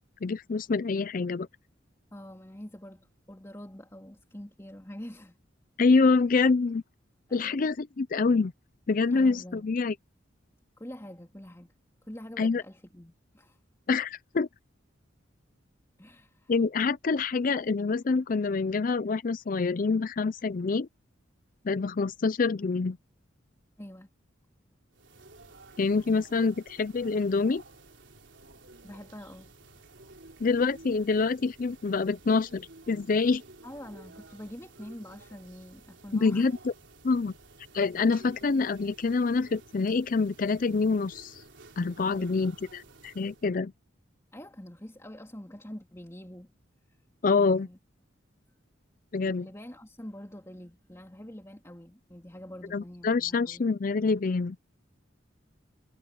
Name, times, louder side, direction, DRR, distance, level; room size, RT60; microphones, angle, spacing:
voice 1, 0.2-1.5 5.8-6.8 7.3-8.5 8.9-9.9 12.4-12.6 13.9-14.5 16.5-20.9 21.6-23.0 25.8-27.6 30.4-33.4 36.2-36.5 37.0-37.3 37.7-41.4 41.8-43.7 47.2-47.7 49.1-49.5 52.7-54.6, left 4 dB, 45° left, 0.5 m, -26 dB
voice 2, 2.1-5.4 7.3-7.6 9.1-9.6 10.8-11.7 12.0-13.6 16.0-16.5 23.8-24.1 26.4-26.5 28.8-29.5 33.6-36.5 42.1-42.4 44.3-46.5 46.9-47.0 47.4-47.8 49.4-53.7, equal, 15° left, 3.2 m, -45 dB
sound 1, 24.9-43.5, right 2 dB, 70° right, 3.8 m, -53 dB
head